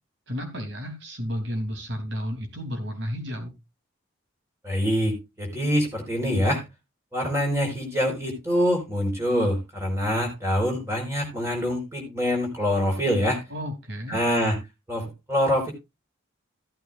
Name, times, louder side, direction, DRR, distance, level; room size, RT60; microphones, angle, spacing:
voice 1, 0.3-3.5 13.5-14.2, equal, 65° right, 4 dB, 3.3 m, -32 dB
voice 2, 4.6-6.6 7.1-13.4 14.1-14.6 14.9-15.7, equal, 15° right, 1 dB, 4.7 m, -25 dB
15.5 x 8.9 x 2.6 m, 0.23 s
head